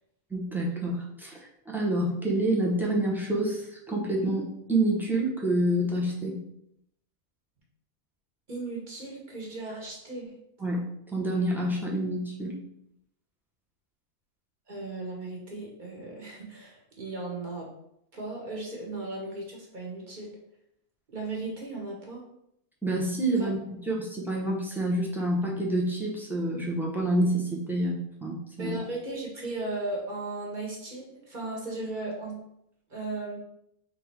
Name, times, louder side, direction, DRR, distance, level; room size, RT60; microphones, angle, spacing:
voice 1, 0.3-1.4 1.7-6.4 10.6-10.8 11.1-12.5 22.8-23.6 23.9-28.8, right 1 dB, 5° right, -4 dB, 0.3 m, -28 dB
voice 2, 8.5-10.3 14.7-17.7 18.1-20.4 21.1-22.2 23.4-23.5 28.6-32.4 32.9-33.4, right 2 dB, 35° right, -2 dB, 1.3 m, -36 dB
3.6 x 2.9 x 4.6 m, 0.77 s
omnidirectional pair, 1.5 m